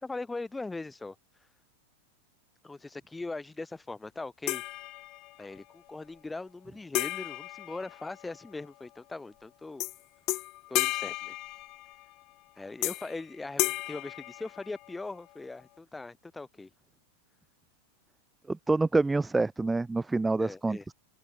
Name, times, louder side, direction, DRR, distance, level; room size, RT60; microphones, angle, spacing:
voice 1, 0.0-1.2 2.6-4.6 5.4-9.8 10.7-11.4 12.6-16.7 20.4-20.9, left 3 dB, 10° left, 5.3 m, -40 dB
sound 1, 4.5-5.5 6.9-8.5 9.8-10.0 10.3-12.1 12.8-13.2 13.6-15.0, left 21 dB, 40° left, 1.9 m, -33 dB
voice 2, 18.5-20.9, right 3 dB, 10° right, 1.3 m, -27 dB
figure-of-eight pair, 90°, 0 cm